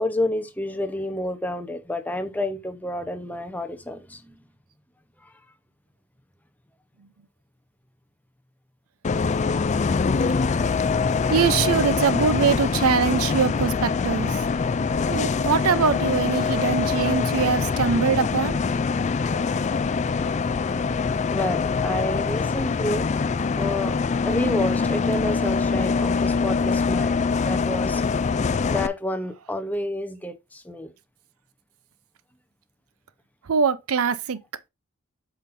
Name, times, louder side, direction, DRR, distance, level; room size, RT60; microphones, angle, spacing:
voice 1, 0.0-4.4 5.2-5.3 19.3-19.4 21.3-23.1 23.6-24.0 24.2-28.0 28.7-30.9, left 1 dB, 10° left, 0.8 m, -29 dB
Bus, 9.0-28.9, left 5 dB, 35° left, 0.4 m, -24 dB
voice 2, 11.3-14.4 15.1-18.6 33.4-34.4, right 6 dB, 75° right, 0.6 m, -23 dB
8.1 x 5.7 x 2.6 m
head